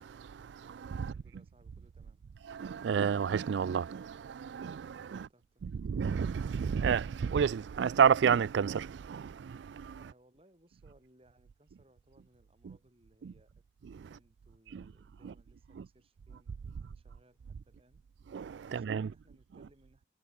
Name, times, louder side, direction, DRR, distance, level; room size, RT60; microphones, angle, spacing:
voice 1, 0.0-1.1 2.5-5.3 5.6-10.0 13.2-13.3 13.9-14.1 14.7-14.8 15.2-15.3 15.8-15.9 18.3-19.1, right 7 dB, 80° right, 0.3 m, -31 dB
voice 2, 1.0-2.2 5.1-5.8 10.0-13.5 14.0-17.4 17.6-18.0 18.6-20.1, right 1 dB, 30° right, 7.6 m, -65 dB
head